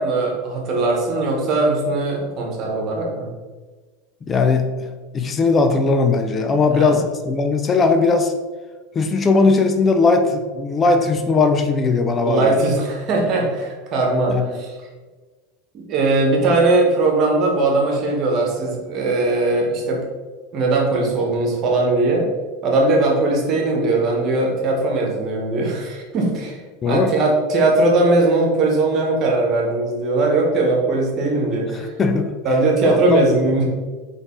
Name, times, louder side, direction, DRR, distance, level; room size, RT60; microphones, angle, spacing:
voice 1, 0.0-3.3 6.7-7.0 12.3-14.8 15.7-20.0 20.5-22.3 22.6-31.9 32.4-33.6, right 2 dB, 45° right, 0 dB, 1.3 m, -19 dB
voice 2, 4.3-4.7 5.1-8.3 8.9-12.5 14.3-14.5 26.8-27.1 32.0-32.3 32.8-33.2, left 4 dB, 30° left, 6 dB, 0.5 m, -18 dB
3.9 x 3.5 x 3.8 m, 1.3 s
figure-of-eight pair, 80°, 0 cm